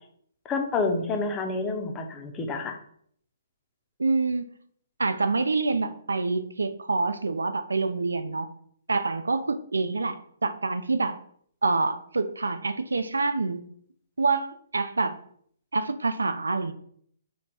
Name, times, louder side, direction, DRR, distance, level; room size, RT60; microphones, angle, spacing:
voice 1, 0.5-2.8, left 3 dB, 20° left, 3 dB, 0.5 m, -28 dB
voice 2, 4.0-4.5 5.0-8.5 8.9-11.2 11.6-13.7 14.2-15.2 15.7-16.7, right 3 dB, 75° right, 10 dB, 0.3 m, -26 dB
3.1 x 2.1 x 4.0 m, 0.63 s
figure-of-eight pair, 125°, 0 cm